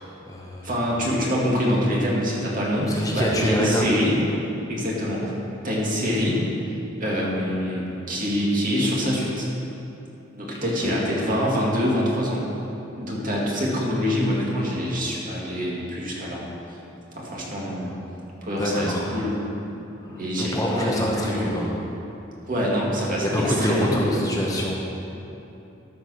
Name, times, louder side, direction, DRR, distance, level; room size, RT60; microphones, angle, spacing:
voice 1, 0.0-0.7 2.9-3.9 10.6-10.9 18.6-19.0 20.1-21.7 23.2-24.7, equal, 20° left, -3 dB, 1.1 m, -26 dB
voice 2, 0.6-4.2 4.7-5.3 5.6-6.4 7.0-9.5 10.3-12.5 13.0-16.5 17.2-18.0 18.4-19.4 20.1-21.5 22.5-24.3, equal, 45° right, -4 dB, 2.1 m, -25 dB
13.0 x 5.2 x 6.4 m, 2.9 s
head